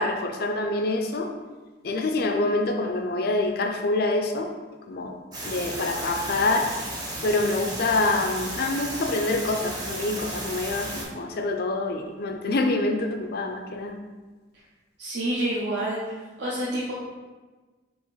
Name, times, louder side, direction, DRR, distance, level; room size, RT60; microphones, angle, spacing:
voice 1, 0.0-1.3 1.8-4.5 4.9-5.2 5.4-6.7 7.2-14.0, left 2 dB, 50° left, 4 dB, 0.4 m, -26 dB
sound 1, 5.3-11.0, right 1 dB, 20° right, 0.8 m, -34 dB
voice 2, 15.0-16.0 16.4-16.9, right 1 dB, 65° right, -9 dB, 0.9 m, -27 dB
5.4 x 2.9 x 3.1 m, 1.3 s
head